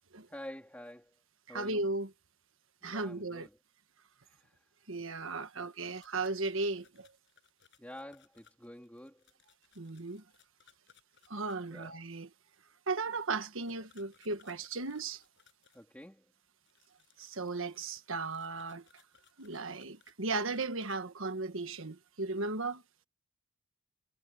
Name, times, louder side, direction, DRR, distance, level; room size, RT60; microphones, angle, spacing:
voice 1, 0.3-1.2 1.5-1.8 2.8-3.6 4.2-4.7 5.5-6.0 7.8-9.3 11.6-11.9 15.7-16.3, left 1 dB, 5° left, 3.5 m, -49 dB
voice 2, 1.5-2.1 2.8-3.5 4.9-7.1 9.8-10.2 11.3-12.3 12.9-15.2 17.2-18.8 19.4-22.8, right 3 dB, 65° right, 1.5 m, -36 dB
sound 1, 5.7-11.6 13.7-15.8 16.6-21.0, left 8 dB, 55° left, 7.1 m, -66 dB
head